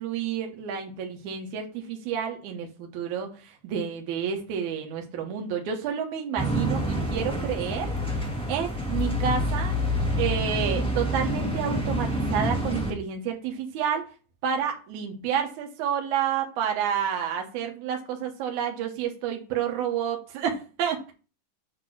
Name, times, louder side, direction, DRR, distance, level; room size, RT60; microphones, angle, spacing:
voice 1, 0.0-7.9 8.5-9.8 10.2-14.0 14.4-21.1, right 8 dB, 75° right, 3 dB, 2.5 m, -30 dB
sound 1, 6.4-12.9, equal, 5° left, 0.6 m, -27 dB
8.0 x 2.9 x 6.2 m, 0.35 s
omnidirectional pair, 3.6 m